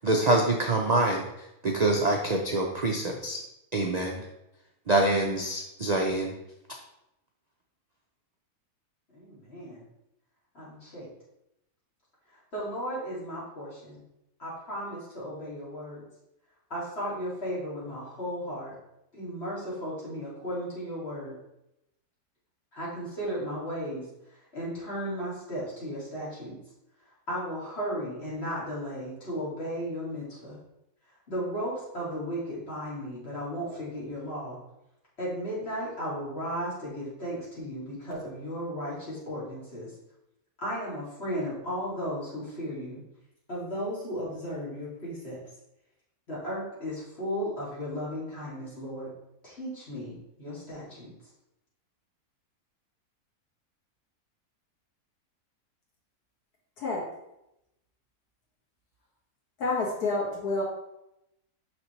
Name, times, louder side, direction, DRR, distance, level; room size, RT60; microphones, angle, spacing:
voice 1, 0.0-1.2 1.6-3.4 3.7-4.2 4.9-6.3, right 2 dB, 50° right, 1 dB, 0.5 m, -25 dB
voice 2, 9.1-9.8 10.5-11.1 12.5-14.0 14.4-16.0 16.7-18.7 19.1-21.3 22.7-24.1 24.5-26.5 27.3-30.6 31.3-34.6 35.2-39.9 40.6-43.0 43.5-45.4 46.3-49.1 49.4-51.1, equal, 45° left, -7 dB, 2.9 m, -35 dB
voice 3, 59.6-60.6, left 3 dB, 90° left, -3 dB, 2.2 m, -28 dB
6.1 x 5.9 x 3.2 m, 0.86 s
omnidirectional pair, 1.6 m